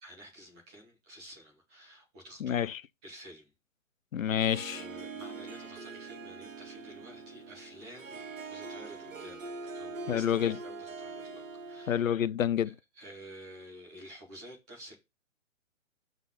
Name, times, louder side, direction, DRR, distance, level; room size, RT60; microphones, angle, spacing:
voice 1, 0.0-2.7 3.0-3.5 4.2-4.3 4.7-11.4 11.7-12.0 12.6-14.9, equal, 5° right, 0.3 m, -50 dB
voice 2, 2.4-2.8 4.1-4.8 10.1-10.6 11.9-12.7, left 9 dB, 80° left, 0.6 m, -28 dB
Harp, 4.3-12.2, right 4 dB, 80° right, 1.2 m, -43 dB
7.0 x 4.0 x 5.7 m
figure-of-eight pair, 130°, 39 cm